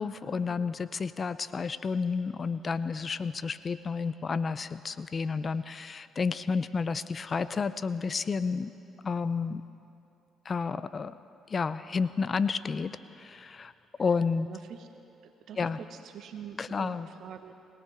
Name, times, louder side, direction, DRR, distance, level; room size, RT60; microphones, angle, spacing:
voice 1, 0.0-8.7 9.0-9.6 10.4-11.2 11.5-13.7 14.0-14.5 15.6-15.8 16.6-17.1, left 5 dB, 40° left, 14 dB, 0.6 m, -31 dB
voice 2, 14.5-14.9 15.2-17.5, right 8 dB, 70° right, 7 dB, 1.3 m, -45 dB
22.0 x 18.0 x 3.6 m, 2.7 s
supercardioid pair, 60°, 0 cm